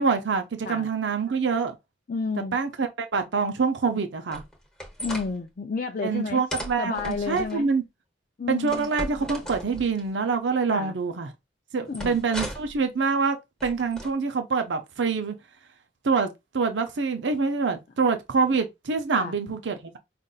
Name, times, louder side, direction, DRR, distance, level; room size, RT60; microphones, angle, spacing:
voice 1, 0.0-1.7 2.5-4.4 6.0-7.8 8.5-11.3 11.7-13.4 13.6-15.3 16.0-20.0, right 5 dB, 85° right, 0.6 m, -25 dB
voice 2, 2.1-2.6 5.0-6.4 6.8-7.7 8.4-8.9 10.7-10.9 11.9-12.2 19.2-19.3, left 4 dB, 45° left, 0.4 m, -31 dB
sound 1, 4.3-5.3 6.5-7.6 8.7-10.0 11.9-12.8 13.6-14.1, equal, 5° left, 1.1 m, -36 dB
5.2 x 2.5 x 2.4 m
head